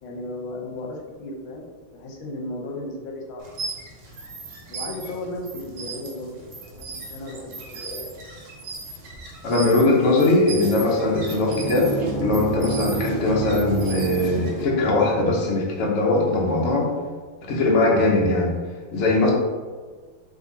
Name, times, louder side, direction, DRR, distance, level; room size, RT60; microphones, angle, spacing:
voice 1, 0.0-3.5 4.7-8.1, left 1 dB, 75° left, 0 dB, 1.5 m, -35 dB
sound 1, 3.4-14.7, right 3 dB, 60° right, 1.2 m, -38 dB
voice 2, 9.4-11.9 12.2-16.9 17.4-18.5 18.9-19.3, left 2 dB, 55° left, -2 dB, 0.8 m, -20 dB
sound 2, 10.5-15.5, right 4 dB, 40° right, 0.9 m, -29 dB
3.8 x 3.2 x 3.9 m, 1.5 s
omnidirectional pair, 2.2 m